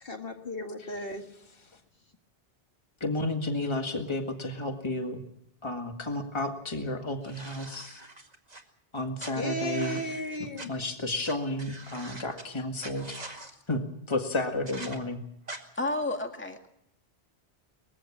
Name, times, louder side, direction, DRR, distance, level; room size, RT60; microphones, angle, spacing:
voice 1, 0.0-1.2 9.4-10.7, equal, 55° left, 5 dB, 2.1 m, -34 dB
voice 2, 3.0-5.2 5.6-8.0 8.9-10.0 10.6-13.2 13.7-15.2, left 2 dB, 25° left, 5 dB, 1.9 m, -32 dB
sound 1, 7.2-8.6 9.2-10.7 11.2-11.3 11.6-12.4 12.8-13.5 14.7-15.0 15.5-15.6, right 2 dB, 35° right, 2.2 m, -43 dB
voice 3, 15.8-16.7, left 2 dB, 10° left, 4 dB, 2.0 m, -31 dB
21.0 x 15.5 x 8.6 m, 0.76 s
omnidirectional pair, 1.1 m